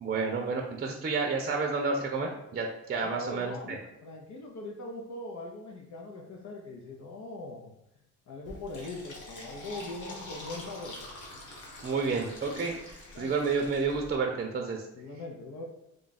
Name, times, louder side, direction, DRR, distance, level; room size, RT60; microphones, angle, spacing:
voice 1, 0.0-3.8 11.8-14.9, right 4 dB, 30° right, 2 dB, 0.5 m, -30 dB
voice 2, 3.0-7.7 8.3-11.0 13.1-13.3 14.9-15.6, left 2 dB, 65° left, -1 dB, 0.7 m, -41 dB
Fill (with liquid), 8.4-14.1, left 1 dB, 90° left, 1.1 m, -45 dB
3.3 x 2.3 x 4.0 m, 0.87 s
cardioid pair, 90°, 30 cm